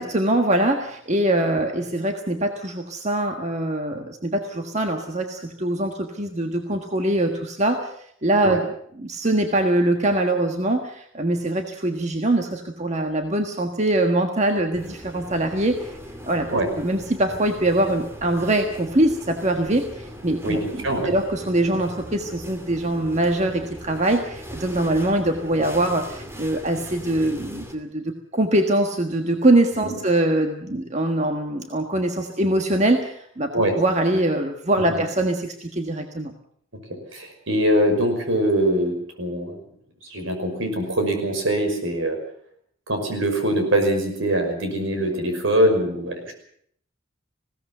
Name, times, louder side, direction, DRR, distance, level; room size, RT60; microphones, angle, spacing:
voice 1, 0.0-7.9 8.2-8.6 9.0-15.9 16.2-36.3, right 1 dB, 35° right, 4 dB, 1.5 m, -23 dB
sound 1, 14.7-27.7, equal, 10° right, 2.5 m, -39 dB
voice 2, 20.4-21.2 29.8-30.0 33.5-33.7 34.9-35.0 37.1-39.6 40.1-42.2 42.9-46.3, right 1 dB, 70° right, 5 dB, 5.8 m, -23 dB
20.5 x 17.0 x 8.0 m, 0.65 s
head